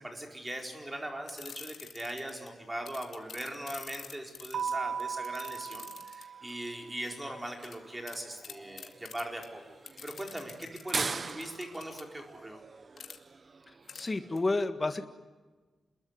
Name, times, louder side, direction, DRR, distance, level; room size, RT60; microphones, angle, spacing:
voice 1, 0.0-9.6 10.0-12.6, right 1 dB, 15° right, 2 dB, 4.6 m, -40 dB
sound 1, 1.3-2.5 2.9-6.5 7.6-7.8 8.1-8.2 8.4-9.5 9.9-12.0 13.0-13.2 13.9-14.1 14.4-14.5, left 7 dB, 75° left, 2.3 m, -47 dB
sound 2, 2.5-14.4, right 4 dB, 35° right, 0.9 m, -44 dB
Keyboard (musical), 4.5-7.1, right 6 dB, 75° right, 1.8 m, -37 dB
voice 2, 13.9-15.1, left 2 dB, 25° left, 7 dB, 1.6 m, -30 dB
28.0 x 21.5 x 9.6 m, 1.3 s
wide cardioid pair, 155°, 0 cm